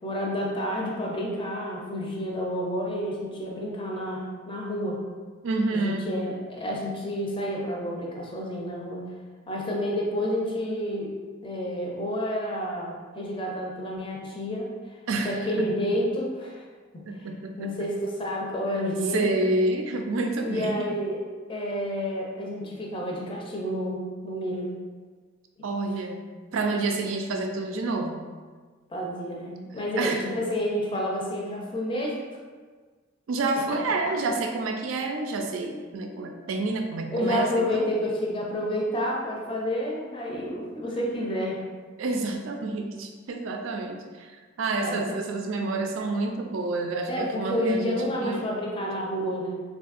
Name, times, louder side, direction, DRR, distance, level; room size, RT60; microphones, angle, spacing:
voice 1, 0.0-5.0 5.7-9.1 9.5-11.1 11.4-14.7 15.2-16.6 16.9-17.0 17.6-19.3 20.4-21.2 21.5-24.7 28.9-32.2 37.1-41.6 44.7-45.2 47.1-49.5, equal, 25° left, -2 dB, 0.4 m, -29 dB
voice 2, 5.4-6.1 15.1-15.7 17.1-17.9 19.1-20.9 25.6-26.2 26.5-28.2 30.0-30.2 33.3-37.9 42.0-44.3 44.6-48.4, right 2 dB, 90° right, 4 dB, 0.4 m, -29 dB
3.4 x 2.6 x 2.4 m, 1.5 s
head